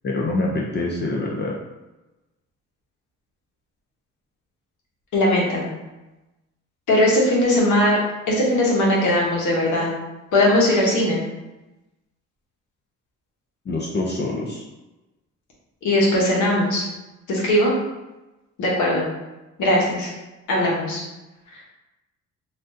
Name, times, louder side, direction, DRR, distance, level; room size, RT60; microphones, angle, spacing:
voice 1, 0.0-1.6 13.7-14.6, left 2 dB, 35° left, -3 dB, 0.5 m, -25 dB
voice 2, 5.1-5.7 6.9-8.0 8.3-9.9 10.3-11.2 15.8-16.8 17.3-17.7 18.6-19.1 19.6-20.1 20.5-21.0, left 1 dB, 75° left, -3 dB, 1.1 m, -19 dB
3.3 x 2.5 x 2.7 m, 1.1 s
cardioid pair, 90°, 30 cm